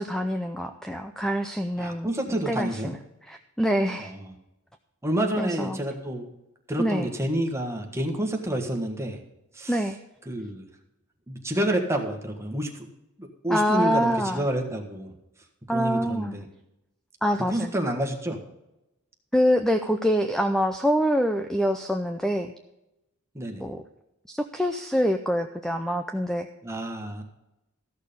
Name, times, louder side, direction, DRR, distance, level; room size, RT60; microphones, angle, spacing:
voice 1, 0.0-3.0 3.3-4.1 5.4-5.8 6.8-7.1 9.7-10.0 13.5-14.5 15.7-16.4 17.2-17.7 19.3-22.5 23.6-23.8 24.4-26.5, equal, ahead, 7 dB, 0.4 m, -25 dB
voice 2, 1.8-2.9 4.0-4.3 5.0-6.3 6.7-9.2 9.5-9.8 10.2-10.7 11.3-12.8 13.2-15.1 15.7-16.5 17.5-18.4 23.3-23.6 26.6-27.2, right 1 dB, 15° right, 3 dB, 1.5 m, -29 dB
14.0 x 6.5 x 5.2 m, 0.93 s
head